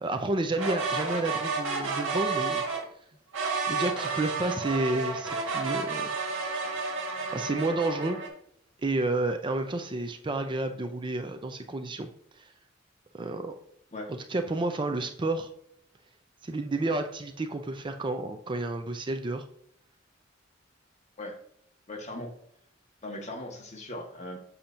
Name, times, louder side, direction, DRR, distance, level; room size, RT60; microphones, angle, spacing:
voice 1, 0.0-2.6 3.7-6.1 7.3-8.2 8.8-12.1 12.4-12.5 13.1-13.5 14.1-15.5 16.4-19.4, right 2 dB, 25° right, 7 dB, 0.5 m, -30 dB
sound 1, 0.5-2.9 3.3-8.3, right 4 dB, 75° right, 1.6 m, -31 dB
voice 2, 21.9-22.3 23.0-24.4, left 1 dB, 35° left, 1 dB, 1.3 m, -38 dB
7.1 x 5.6 x 2.6 m, 0.69 s
head